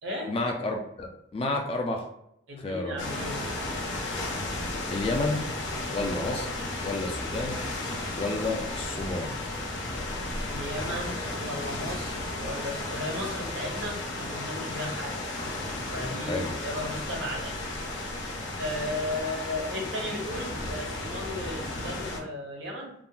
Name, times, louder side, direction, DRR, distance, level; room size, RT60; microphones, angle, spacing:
voice 1, 0.3-2.0 2.6-3.0 4.9-5.4 5.9-6.5 6.8-7.6 8.2-9.3 16.3-16.5, left 2 dB, 30° left, 2 dB, 0.3 m, -30 dB
voice 2, 2.5-3.6 10.5-15.2 15.9-17.6 18.6-22.9, left 1 dB, 75° right, -1 dB, 0.9 m, -35 dB
sound 1, 3.0-22.2, left 2 dB, 75° left, 0.6 m, -34 dB
sound 2, 4.5-11.2, equal, 50° left, 1.2 m, -44 dB
3.6 x 2.0 x 2.3 m, 0.77 s
head